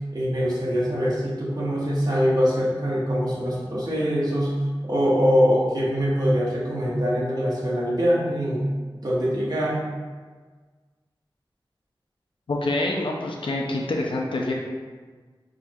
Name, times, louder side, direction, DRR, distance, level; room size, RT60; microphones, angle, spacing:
voice 1, 0.1-4.5 4.8-8.6 9.0-9.8, equal, 50° right, -6 dB, 1.0 m, -23 dB
voice 2, 12.5-14.5, left 2 dB, 80° left, -1 dB, 0.5 m, -26 dB
4.8 x 2.8 x 2.3 m, 1.4 s
wide cardioid pair, 60°, 9 cm